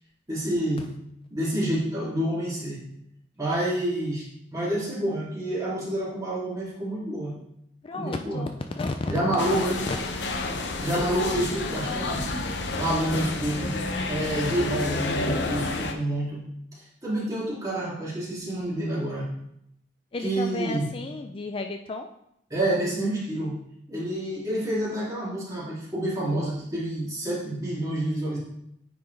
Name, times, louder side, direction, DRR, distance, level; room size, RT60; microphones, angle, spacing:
voice 1, 0.3-0.9 1.3-2.8 3.4-7.3 7.9-8.5 9.1-9.8 10.8-12.3 12.8-13.7 14.1-16.4 17.0-19.3 20.2-20.9 22.5-23.6 23.9-28.4, right 1 dB, 20° right, -7 dB, 2.6 m, -28 dB
voice 2, 7.8-9.5 9.9-10.0 20.1-22.1, left 3 dB, 30° left, 5 dB, 0.3 m, -33 dB
sound 1, 9.4-15.9, left 2 dB, 75° left, 0.8 m, -29 dB
9.2 x 4.4 x 3.3 m, 0.76 s
head